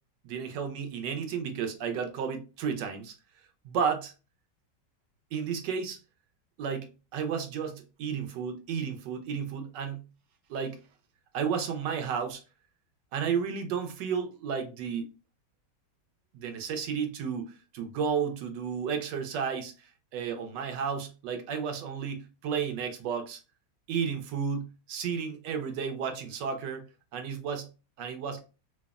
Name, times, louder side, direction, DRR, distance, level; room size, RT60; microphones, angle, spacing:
voice 1, 0.2-3.1 3.6-4.1 5.3-6.0 6.6-10.0 10.5-10.8 11.3-12.4 13.1-15.1 16.3-19.7 20.1-23.4 23.9-26.8 27.1-27.7 28.0-28.4, right 6 dB, 85° right, 1.3 m, -32 dB
3.3 x 2.0 x 2.3 m
omnidirectional pair, 1.9 m